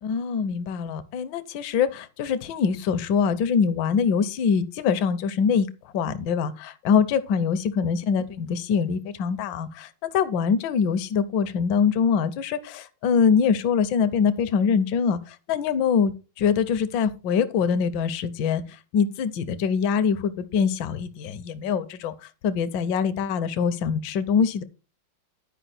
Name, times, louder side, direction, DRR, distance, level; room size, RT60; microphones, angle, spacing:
voice 1, 0.0-5.7 5.9-24.6, left 6 dB, 70° left, 1.3 m, -24 dB
10.0 x 5.0 x 4.1 m
omnidirectional pair, 2.2 m